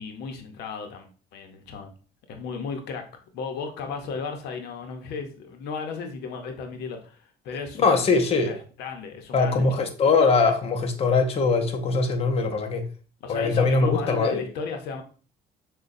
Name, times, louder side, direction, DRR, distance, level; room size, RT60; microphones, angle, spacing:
voice 1, 0.0-1.9 2.3-3.0 3.3-9.9 13.2-15.0, left 5 dB, 80° left, 0.7 m, -35 dB
voice 2, 7.8-8.5 9.3-12.8 13.3-14.4, left 4 dB, 35° left, 0.6 m, -22 dB
6.4 x 2.2 x 2.5 m
cardioid pair, 110°, 17 cm